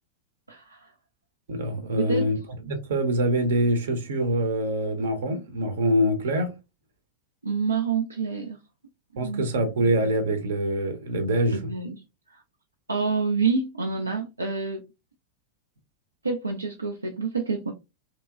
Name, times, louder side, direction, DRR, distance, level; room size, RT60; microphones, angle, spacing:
voice 1, 0.5-0.9 2.0-2.3 7.4-8.6 9.1-9.6 11.5-12.0 12.3-12.4 12.9-14.8 16.2-17.7, right 5 dB, 80° right, 0.4 m, -28 dB
voice 2, 1.5-2.4 2.7-6.5 9.2-11.6, right 1 dB, 60° right, 0.7 m, -24 dB
3.0 x 2.9 x 2.3 m
figure-of-eight pair, 90°, 0 cm